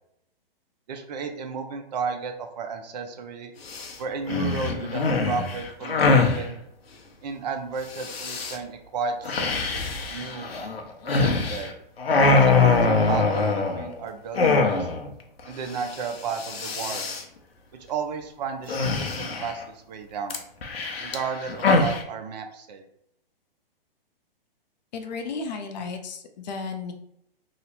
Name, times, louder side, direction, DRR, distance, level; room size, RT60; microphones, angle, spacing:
voice 1, 0.9-3.5 4.0-6.6 7.2-10.5 11.0-11.7 12.3-14.9 15.5-17.1 17.9-20.4 21.0-22.8, right 5 dB, 45° right, 6 dB, 0.5 m, -33 dB
sound 1, 3.7-3.9 4.3-6.4 7.9-8.6 9.3-11.7 12.0-13.9 14.3-15.1 15.4-15.5 15.7-16.0 16.3-17.2 18.7-19.6 20.3-22.0, left 3 dB, 90° left, 0.7 m, -23 dB
voice 2, 24.9-26.9, left 4 dB, 50° left, 6 dB, 0.5 m, -33 dB
3.0 x 2.0 x 4.1 m, 0.76 s
hypercardioid pair, 130°, 29 cm